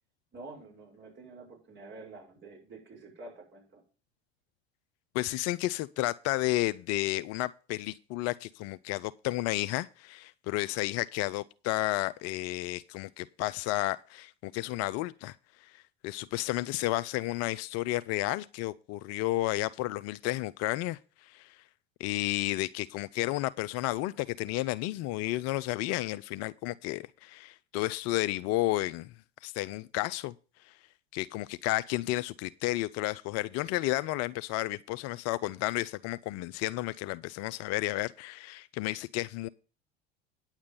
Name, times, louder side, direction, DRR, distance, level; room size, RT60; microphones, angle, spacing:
voice 1, 0.3-3.8 11.9-12.0, right 3 dB, 35° right, 5.6 m, -48 dB
voice 2, 5.1-15.4 15.6-21.6 22.0-29.1 29.4-30.3 30.7-30.8 31.1-39.5, left 17 dB, 50° left, 0.5 m, -32 dB
9.6 x 7.4 x 5.4 m
hypercardioid pair, 80°, 33 cm